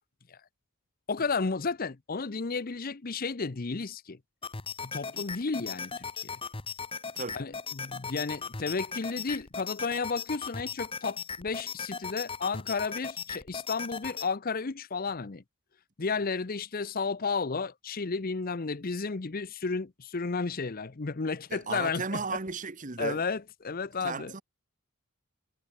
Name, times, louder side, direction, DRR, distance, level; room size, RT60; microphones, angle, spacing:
voice 1, 1.1-4.2 4.8-6.4 7.3-15.4 16.0-22.4 23.0-24.3, left 4 dB, 40° left, 0.7 m, -33 dB
sound 1, 4.4-14.3, left 5 dB, 25° left, 1.3 m, -38 dB
voice 2, 21.5-23.2 24.0-24.4, right 4 dB, 35° right, 1.2 m, -35 dB
head